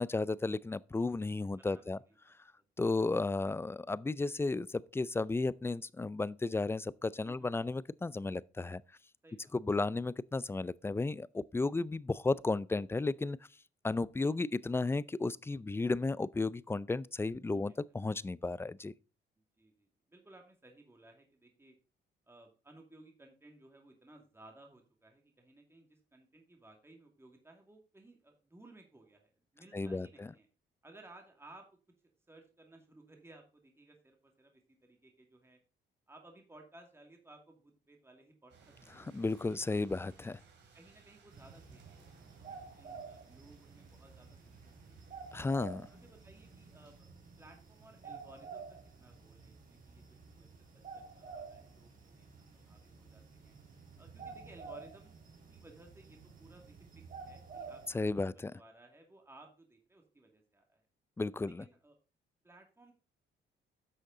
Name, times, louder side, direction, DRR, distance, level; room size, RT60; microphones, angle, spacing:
voice 1, 0.0-2.0 2.8-8.8 9.5-13.4 13.8-17.7 18.0-18.9 29.7-30.3 39.0-40.4 45.3-45.9 57.9-58.5 61.2-61.6, left 3 dB, 10° left, 0.3 m, -34 dB
voice 2, 1.6-2.0 2.6-3.0 7.2-7.5 9.2-9.5 14.2-14.5 17.5-17.7 19.6-21.8 22.3-30.5 30.8-31.6 32.3-35.6 36.1-38.7 39.0-39.1 40.7-45.1 46.0-52.3 52.5-53.6 54.0-55.2 55.5-56.7 57.2-57.8 58.1-60.8 61.4-61.9 62.4-62.9, right 2 dB, 10° right, 2.2 m, -59 dB
sound 1, 38.5-47.0, right 5 dB, 60° right, 2.9 m, -64 dB
sound 2, 41.3-57.9, right 5 dB, 45° right, 4.4 m, -51 dB
10.0 x 6.4 x 3.8 m
cardioid pair, 90°, 20 cm